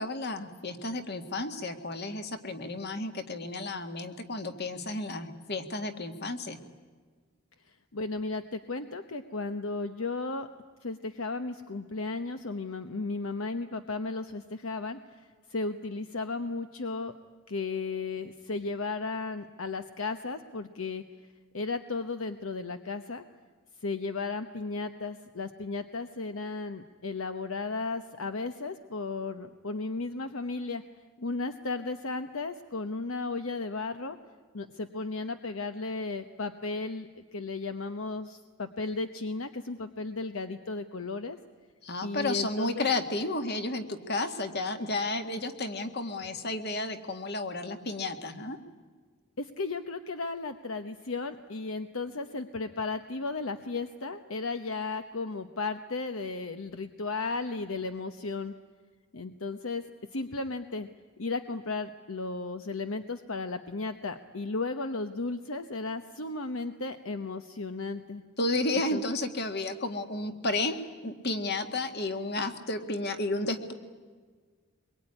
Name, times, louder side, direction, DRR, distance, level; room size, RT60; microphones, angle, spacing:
voice 1, 0.0-6.6 41.8-48.6 68.4-73.7, left 2 dB, 50° left, 7 dB, 2.0 m, -32 dB
voice 2, 7.9-10.5 10.8-15.0 15.5-17.1 17.5-21.0 21.5-23.2 23.8-30.8 31.2-34.2 34.5-41.4 42.0-42.9 49.4-58.5 59.1-59.8 60.1-60.9 61.2-68.2 68.9-69.0, left 3 dB, 65° left, 8 dB, 1.0 m, -34 dB
24.5 x 22.5 x 9.9 m, 1.5 s
head